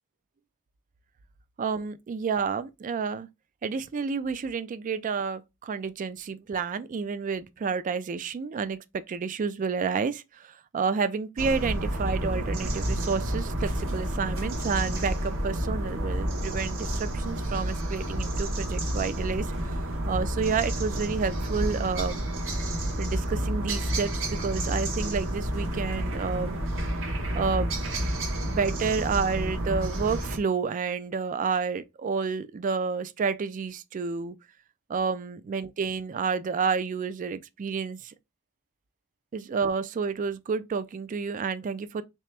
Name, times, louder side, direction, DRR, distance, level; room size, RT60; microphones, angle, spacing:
voice 1, 1.6-3.3 3.6-22.2 23.0-26.6 27.3-28.1 28.4-34.4 34.9-38.1 39.3-42.0, right 5 dB, 35° right, 0.3 m, -30 dB
sound 1, 11.4-30.4, right 1 dB, 65° right, 1.1 m, -30 dB
3.3 x 3.0 x 3.2 m
head